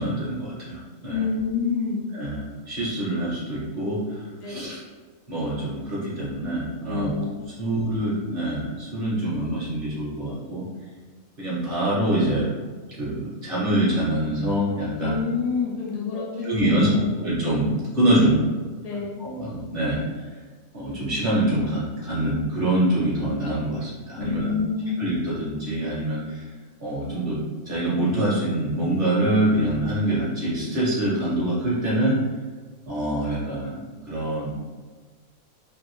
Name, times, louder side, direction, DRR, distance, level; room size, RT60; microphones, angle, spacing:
voice 1, 0.0-1.2 2.1-4.2 4.4-4.8 5.3-7.2 7.6-10.7 11.4-12.5 13.0-15.2 16.1-18.5 19.2-20.2 20.7-24.5 25.0-26.4 26.8-27.4 27.7-32.2 32.9-34.5, right 1 dB, 50° right, -7 dB, 0.7 m, -25 dB
voice 2, 1.1-2.0 4.4-4.7 6.9-7.3 7.6-7.8 15.0-17.1 18.8-19.2 24.2-25.0, left 5 dB, 80° left, -4 dB, 0.3 m, -28 dB
2.6 x 2.5 x 3.0 m, 1.4 s
omnidirectional pair, 1.5 m